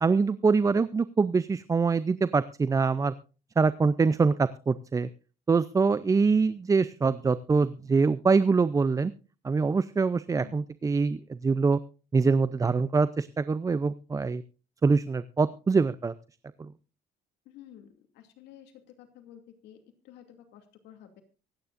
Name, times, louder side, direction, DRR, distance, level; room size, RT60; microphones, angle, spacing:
voice 1, 0.0-3.1 3.6-5.1 5.5-9.1 9.4-11.8 12.1-14.4 14.8-16.1, right 4 dB, 20° right, 15 dB, 0.5 m, -24 dB
voice 2, 17.4-18.7 19.0-21.2, left 10 dB, 85° left, 5 dB, 2.5 m, -52 dB
24.0 x 9.7 x 2.5 m, 0.34 s
cardioid pair, 110°, 17 cm